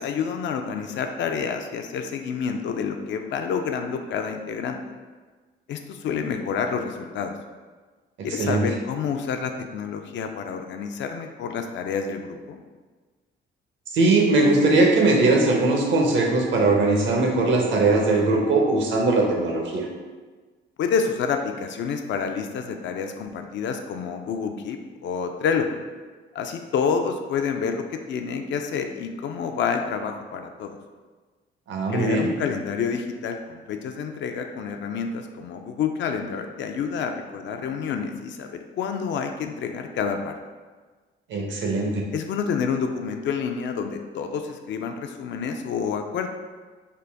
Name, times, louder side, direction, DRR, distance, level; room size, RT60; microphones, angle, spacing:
voice 1, 0.0-4.8 5.7-7.3 8.2-12.6 20.8-25.7 26.3-30.8 31.9-40.3 42.1-46.3, left 6 dB, 65° left, 5 dB, 0.4 m, -28 dB
voice 2, 13.9-19.9 31.7-32.3 41.3-42.0, right 2 dB, 70° right, 0 dB, 0.8 m, -20 dB
3.9 x 2.2 x 3.4 m, 1.4 s
cardioid pair, 90°, 20 cm